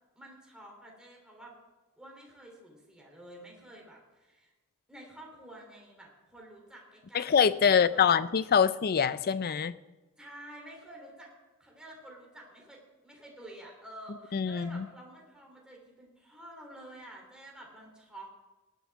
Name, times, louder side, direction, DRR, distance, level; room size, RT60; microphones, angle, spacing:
voice 1, 0.1-1.6 2.0-4.5 4.9-8.2 10.2-11.3 11.6-18.3, right 1 dB, 5° right, -2 dB, 3.2 m, -50 dB
voice 2, 7.1-9.7 14.3-14.8, left 7 dB, 45° left, 15 dB, 0.4 m, -24 dB
18.5 x 11.0 x 3.6 m, 1.2 s
head